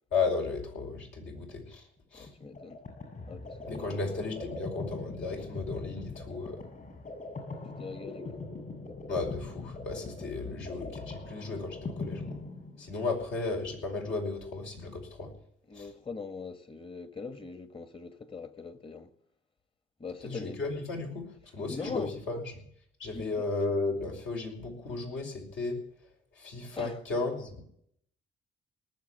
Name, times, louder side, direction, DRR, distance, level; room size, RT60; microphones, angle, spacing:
voice 1, 0.1-2.3 3.6-6.6 9.1-12.4 12.8-15.3 15.7-15.9 20.2-22.7 23.0-25.9 26.3-27.6, left 3 dB, 75° left, 5.3 m, -34 dB
voice 2, 2.1-2.8 3.3-3.9 7.8-8.4 15.7-19.1 20.0-20.6 21.7-22.1 23.1-23.5 26.7-27.0, left 4 dB, 25° left, 1.4 m, -42 dB
sound 1, 2.3-13.1, left 3 dB, 45° left, 6.8 m, -41 dB
19.0 x 7.3 x 9.8 m
cardioid pair, 90°, 20 cm